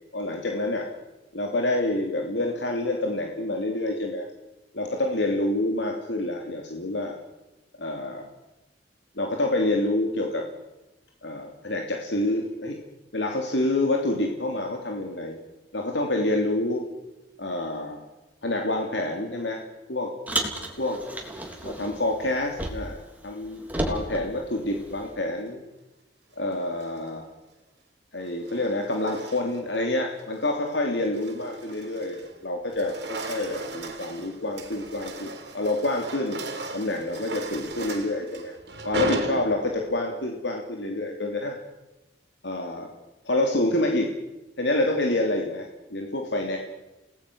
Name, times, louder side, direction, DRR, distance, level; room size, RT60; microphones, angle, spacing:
voice 1, 0.1-0.9 1.3-4.3 4.7-7.2 7.8-8.3 9.1-10.5 11.2-12.8 13.1-15.4 15.7-16.8 17.4-18.0 18.4-19.6 19.9-20.1 20.8-21.0 21.6-25.6 26.4-27.2 28.1-36.4 36.7-38.5 38.8-41.6 42.4-42.9 43.2-44.1 44.6-46.6, left 1 dB, 85° left, 1 dB, 3.1 m, -27 dB
Car, 20.3-23.1 23.3-25.1, right 1 dB, 10° right, 3.4 m, -33 dB
sound 1, 26.6-27.1 28.2-29.8 30.2-30.5 31.0-32.4 32.7-40.0, right 2 dB, 70° right, 3.9 m, -36 dB
30.0 x 19.0 x 6.4 m, 1.0 s
head